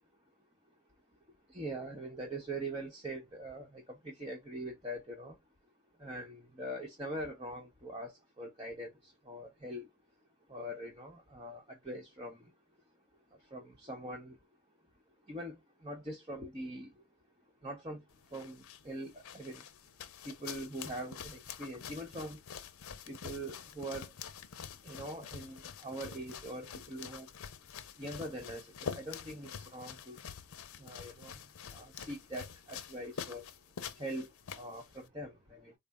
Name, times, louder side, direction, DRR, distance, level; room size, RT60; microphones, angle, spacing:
voice 1, 1.5-5.4 6.0-8.9 9.2-9.9 10.5-12.4 13.5-14.4 15.3-16.9 17.6-18.0 18.3-19.6 20.2-22.4 23.1-24.1 24.8-27.3 28.0-30.2 30.8-31.3 31.7-33.5 34.0-34.3 34.6-35.7, right 1 dB, 25° right, 0.9 m, -43 dB
sound 1, 18.1-35.1, left 7 dB, 80° left, 0.6 m, -47 dB
4.1 x 2.0 x 3.5 m
head